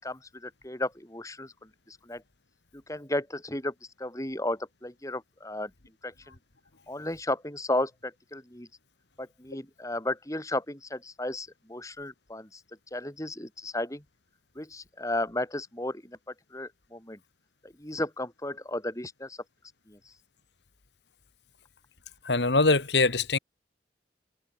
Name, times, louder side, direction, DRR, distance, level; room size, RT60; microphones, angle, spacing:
voice 1, 0.0-2.2 2.7-5.7 6.0-6.4 6.9-8.7 9.2-12.6 12.9-14.0 14.5-17.2 17.6-19.4 19.9-20.1, left 1 dB, 20° left, 4.2 m, -34 dB
voice 2, 22.3-23.4, left 3 dB, 75° left, 1.9 m, -23 dB
head